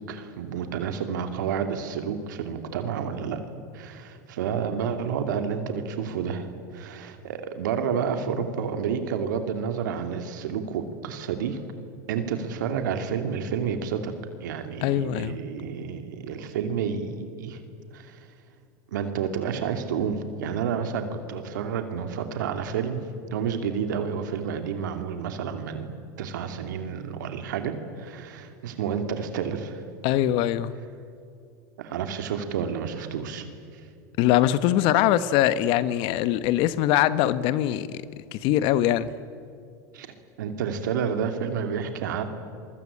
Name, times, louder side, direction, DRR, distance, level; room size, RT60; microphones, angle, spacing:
voice 1, 0.1-3.4 3.7-11.6 12.1-14.1 14.4-17.6 17.9-18.3 18.9-23.0 23.3-25.9 26.2-29.8 31.8-33.5 39.9-40.1 40.4-42.2, right 7 dB, 80° right, 2.6 m, -30 dB
voice 2, 14.8-15.4 30.0-30.7 34.2-38.0 38.3-39.1, left 12 dB, 60° left, 1.3 m, -22 dB
28.5 x 23.0 x 8.7 m
hypercardioid pair, 100°, 10 cm